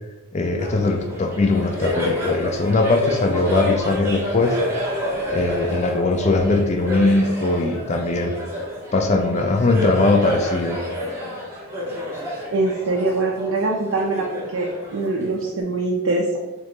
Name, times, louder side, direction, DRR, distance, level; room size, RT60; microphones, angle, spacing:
voice 1, 0.3-4.6 5.3-8.4 8.9-10.8, left 2 dB, 30° left, 5 dB, 0.3 m, -20 dB
Laughter, 0.6-15.6, left 1 dB, 10° right, 0.7 m, -29 dB
voice 2, 12.5-16.4, right 2 dB, 60° right, -1 dB, 0.5 m, -23 dB
3.1 x 2.9 x 3.2 m, 1.1 s
head